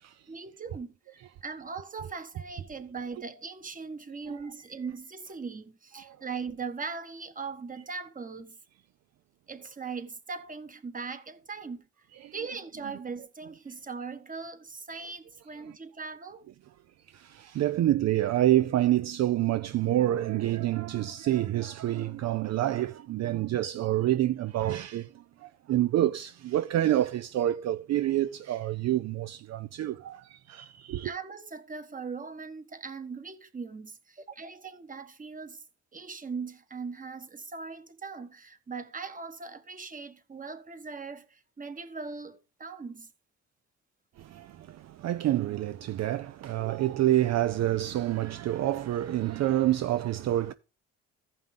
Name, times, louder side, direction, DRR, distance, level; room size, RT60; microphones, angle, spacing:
voice 1, 0.3-8.6 9.5-11.8 12.3-16.5 31.0-35.6 35.9-43.1, right 5 dB, 25° right, 1.3 m, -40 dB
voice 2, 17.1-31.1 44.2-50.5, right 13 dB, 60° right, 0.5 m, -28 dB
14.5 x 5.6 x 3.7 m
cardioid pair, 90°, 30 cm